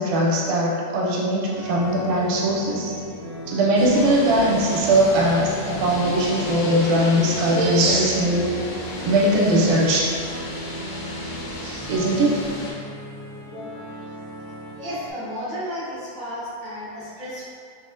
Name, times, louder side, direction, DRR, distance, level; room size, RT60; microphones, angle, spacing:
voice 1, 0.0-2.9 3.5-8.5 9.0-10.1 11.6-12.4, right 1 dB, 80° right, -3 dB, 2.0 m, -20 dB
sound 1, 1.4-15.1, equal, 60° left, 0.8 m, -37 dB
sound 2, 3.8-12.7, left 2 dB, 85° left, 2.1 m, -33 dB
voice 2, 14.8-17.5, equal, 60° right, -14 dB, 1.2 m, -33 dB
5.7 x 2.0 x 2.5 m, 2.3 s
omnidirectional pair, 3.6 m